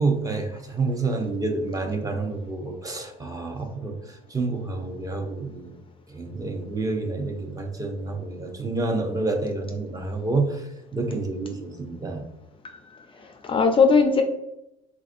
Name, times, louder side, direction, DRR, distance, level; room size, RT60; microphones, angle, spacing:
voice 1, 0.0-5.8 6.1-12.2, right 3 dB, 20° right, 3 dB, 0.6 m, -28 dB
voice 2, 12.6-14.2, left 5 dB, 30° left, 5 dB, 0.4 m, -21 dB
3.4 x 2.4 x 2.5 m, 0.88 s
supercardioid pair, 80°, 17 cm